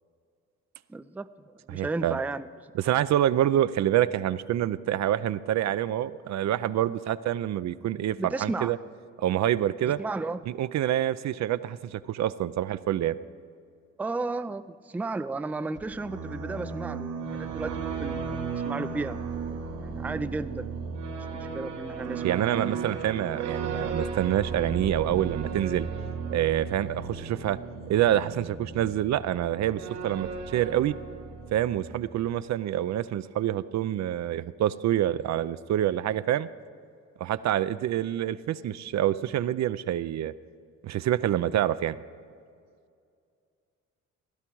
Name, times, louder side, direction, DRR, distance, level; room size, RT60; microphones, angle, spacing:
voice 1, 0.9-1.3 1.7-2.5 8.2-8.8 10.0-10.4 14.0-19.2 19.8-21.0 21.4-22.2, right 3 dB, 5° right, 11 dB, 0.4 m, -33 dB
voice 2, 1.7-2.2 2.7-8.8 9.2-10.0 10.5-13.2 22.2-25.9 26.3-27.6 27.9-30.9 31.5-36.5 37.2-40.3 40.8-42.0, right 12 dB, 65° right, 14 dB, 0.5 m, -27 dB
sound 1, 15.8-32.4, right 5 dB, 80° right, 2.3 m, -35 dB
16.5 x 11.5 x 4.6 m, 2.3 s
cardioid pair, 90°, 30 cm